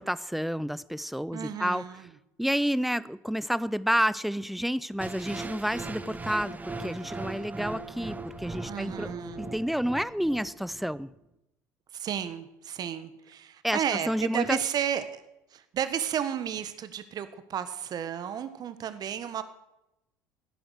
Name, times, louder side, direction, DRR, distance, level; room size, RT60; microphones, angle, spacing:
voice 1, 0.0-1.8 2.4-9.1 9.4-11.1 13.6-14.6, equal, ahead, 18 dB, 0.7 m, -30 dB
voice 2, 1.3-2.1 8.6-9.5 11.9-15.2 15.5-19.4, right 9 dB, 45° right, 12 dB, 1.5 m, -33 dB
sound 1, 5.0-11.0, right 3 dB, 15° right, 1.4 m, -39 dB
18.5 x 10.5 x 6.5 m, 0.87 s
hypercardioid pair, 70°, 10 cm